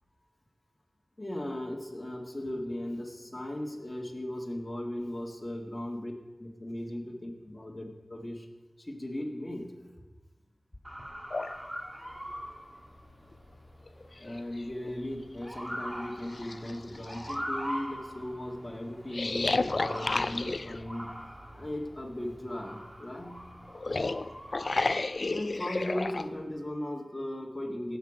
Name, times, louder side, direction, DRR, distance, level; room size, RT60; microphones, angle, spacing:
voice 1, 1.2-6.1 6.4-8.5 8.8-9.7 14.1-21.1 21.5-23.4 25.3-28.0, left 1 dB, 25° left, 1 dB, 1.9 m, -37 dB
Motor vehicle (road) / Siren, 10.8-26.4, equal, 10° right, 2.3 m, -43 dB
sound 1, 11.3-11.5 13.3-13.4 13.9-14.9 15.5-15.6 16.2-17.3 19.1-20.9 23.7-26.3, left 3 dB, 60° left, 0.4 m, -31 dB
16.5 x 6.6 x 4.9 m, 1.2 s
cardioid pair, 45°, 0 cm